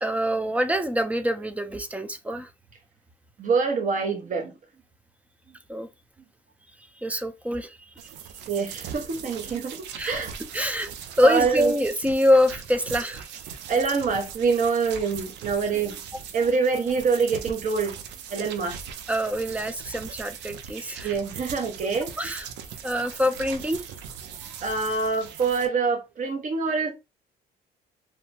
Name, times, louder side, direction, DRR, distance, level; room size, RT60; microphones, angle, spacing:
voice 1, 0.0-2.5 5.7-5.9 7.0-7.8 10.0-10.2 10.5-10.9 11.2-13.4 19.1-21.1 22.2-22.5 22.8-23.8 24.4-24.5, equal, 10° right, 0.4 m, -25 dB
voice 2, 3.4-4.6 8.5-10.3 11.2-11.7 13.7-16.0 16.3-18.0 18.3-18.8 21.0-22.4 24.6-26.9, right 5 dB, 45° right, 0.9 m, -25 dB
sound 1, 8.0-25.7, right 8 dB, 70° right, 0.5 m, -40 dB
2.7 x 2.1 x 2.7 m
supercardioid pair, 75°, 19 cm